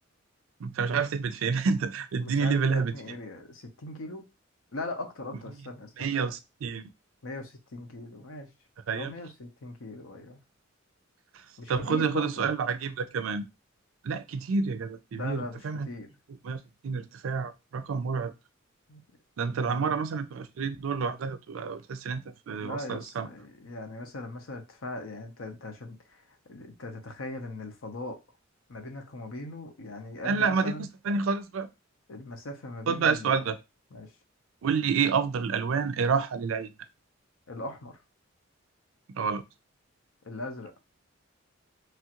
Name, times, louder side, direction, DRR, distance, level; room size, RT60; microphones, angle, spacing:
voice 1, 0.6-2.9 6.0-6.8 8.9-9.1 11.3-13.5 14.0-15.9 16.4-18.3 19.4-23.3 30.2-30.7 31.0-31.7 32.9-33.6 34.6-36.7 39.1-39.4, right 5 dB, 80° right, 0.4 m, -29 dB
voice 2, 2.2-4.2 4.7-6.1 7.2-8.5 9.0-10.4 11.6-12.5 15.1-16.1 18.9-19.0 19.6-20.0 22.5-26.2 26.5-28.2 28.7-30.9 32.1-33.5 33.9-34.1 37.5-38.0 40.2-40.7, left 2 dB, 85° left, 0.7 m, -40 dB
3.1 x 2.4 x 2.8 m
head